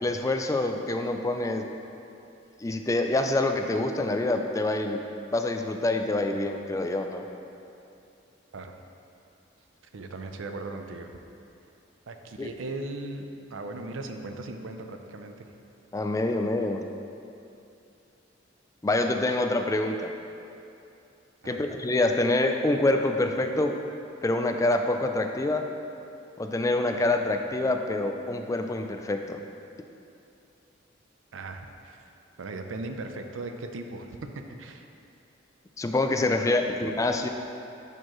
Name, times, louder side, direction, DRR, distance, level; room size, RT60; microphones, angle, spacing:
voice 1, 0.0-1.7 2.6-5.0 5.3-7.2 12.4-12.5 15.9-16.9 18.8-20.1 21.5-23.8 24.2-25.6 26.4-29.4 35.8-37.3, left 2 dB, 15° left, 5 dB, 0.3 m, -26 dB
voice 2, 9.9-11.1 12.1-15.4 21.4-21.7 31.3-32.0 32.4-34.2 34.6-34.9 36.4-36.8, right 2 dB, 85° right, 5 dB, 0.5 m, -38 dB
10.5 x 4.5 x 3.0 m, 2.7 s
head